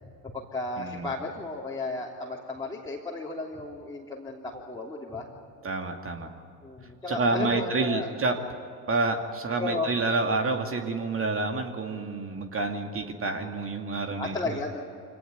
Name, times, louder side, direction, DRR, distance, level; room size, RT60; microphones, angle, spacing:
voice 1, 0.2-5.3 6.6-8.1 9.6-9.9 14.2-14.8, left 3 dB, 10° left, -4 dB, 3.5 m, -34 dB
voice 2, 0.8-1.1 5.6-6.3 7.1-8.4 8.9-14.4, right 3 dB, 25° right, 4 dB, 2.4 m, -28 dB
25.5 x 19.0 x 9.6 m, 2.5 s
hypercardioid pair, 80°, 48 cm